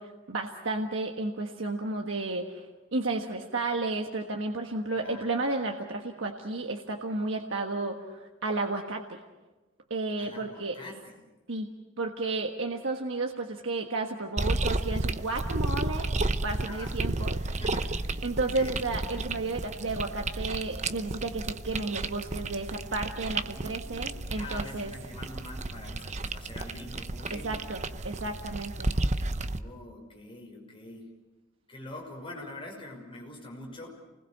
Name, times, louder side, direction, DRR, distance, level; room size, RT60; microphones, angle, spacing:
voice 1, 0.0-2.7 2.9-9.2 9.9-10.8 11.5-11.7 12.0-16.1 16.4-17.4 18.2-24.9 27.3-28.9, right 2 dB, 70° right, 2 dB, 1.5 m, -32 dB
voice 2, 5.0-5.3 10.2-11.1 16.6-17.0 17.6-18.7 23.5-27.6 29.4-31.1 31.7-34.0, left 1 dB, 25° left, 0 dB, 6.1 m, -45 dB
sound 1, 14.4-29.6, right 2 dB, 35° right, 0.8 m, -32 dB
28.5 x 21.0 x 6.6 m, 1.2 s
head